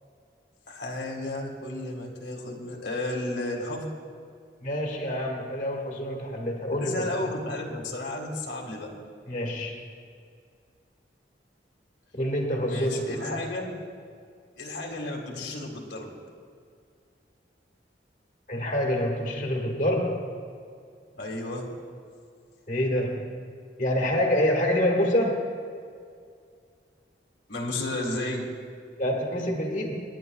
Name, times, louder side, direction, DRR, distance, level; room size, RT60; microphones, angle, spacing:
voice 1, 0.7-3.9 6.7-8.9 12.7-13.7 14.6-16.1 21.1-21.7 27.5-28.5, left 2 dB, 75° left, 0 dB, 1.8 m, -33 dB
voice 2, 4.6-7.3 9.3-9.8 12.2-13.4 18.5-20.3 22.7-23.3 23.8-25.4 29.0-30.0, left 1 dB, 45° left, -1 dB, 1.7 m, -27 dB
27.5 x 10.5 x 2.3 m, 2.2 s
head